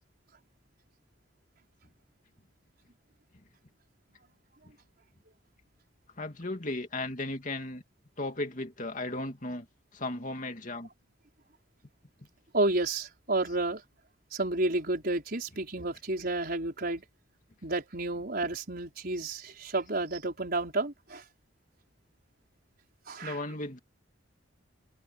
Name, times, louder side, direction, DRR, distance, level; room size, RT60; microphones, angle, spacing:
voice 1, 6.2-7.8 8.2-9.7 9.9-10.9 13.4-13.6 23.2-23.8, left 2 dB, 40° left, 2.5 m, -35 dB
voice 2, 12.5-13.8 14.3-17.0 17.6-21.2 23.1-23.4, right 2 dB, 50° right, 5.3 m, -31 dB
head